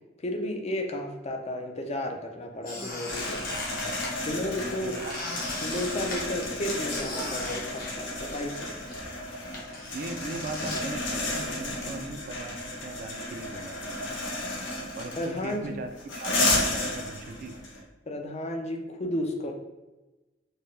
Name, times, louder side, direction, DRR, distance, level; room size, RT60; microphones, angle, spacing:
voice 1, 0.2-3.5 4.3-5.0 5.6-8.7 15.2-15.8 18.1-19.5, left 1 dB, 35° left, 4 dB, 0.5 m, -33 dB
Squeak, 2.6-4.1 4.9-8.6 8.9-10.8, left 2 dB, 50° left, 1.1 m, -37 dB
sound 1, 3.1-17.8, left 2 dB, 80° left, 1.0 m, -33 dB
voice 2, 4.6-5.2 9.9-13.9 15.0-17.6, right 2 dB, 45° right, 7 dB, 0.3 m, -39 dB
4.4 x 2.2 x 3.2 m, 1.1 s
head